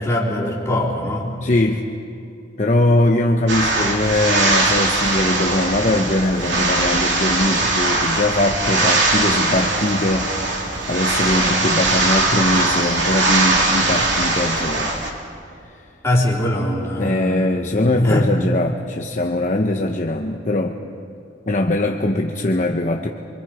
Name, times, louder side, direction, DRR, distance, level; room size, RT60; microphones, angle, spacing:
voice 1, 0.0-1.6 16.0-17.5 17.9-18.3, left 1 dB, 15° left, -5 dB, 3.5 m, -21 dB
voice 2, 1.4-1.8 2.6-10.4 10.9-14.9 17.0-20.8 21.5-23.1, left 1 dB, 40° left, 2 dB, 0.9 m, -21 dB
sound 1, 3.5-15.1, right 2 dB, 65° right, 2.9 m, -20 dB
26.0 x 24.5 x 4.9 m, 2.6 s
head